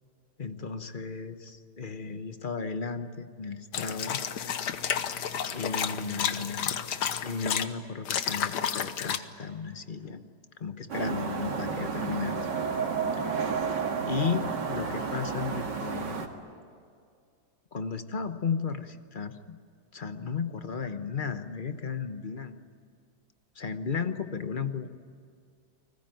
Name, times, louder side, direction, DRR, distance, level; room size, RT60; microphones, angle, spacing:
voice 1, 0.4-4.2 5.5-6.8 7.2-10.2 10.6-12.5 13.2-13.3 14.1-16.3 17.7-19.6 19.9-22.6 23.6-24.9, left 5 dB, 35° left, 9 dB, 1.1 m, -34 dB
sound 1, 3.7-7.6 8.0-9.2, left 8 dB, 75° left, 1.6 m, -31 dB
sound 2, 10.9-16.3, right 5 dB, 90° right, 2.6 m, -31 dB
30.0 x 20.5 x 9.3 m, 2.3 s
omnidirectional pair, 1.8 m